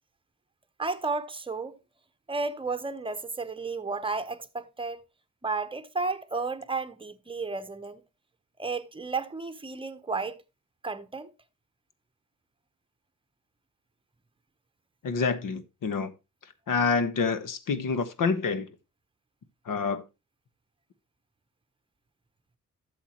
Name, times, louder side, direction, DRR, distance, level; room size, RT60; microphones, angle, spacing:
voice 1, 0.8-1.8 2.3-5.0 5.4-8.0 8.6-10.3 10.8-11.3, right 4 dB, 15° right, 0.8 m, -32 dB
voice 2, 15.0-16.1 16.7-18.7 19.7-20.0, left 5 dB, 75° left, 1.3 m, -27 dB
12.5 x 7.2 x 3.0 m
wide cardioid pair, 140°, 33 cm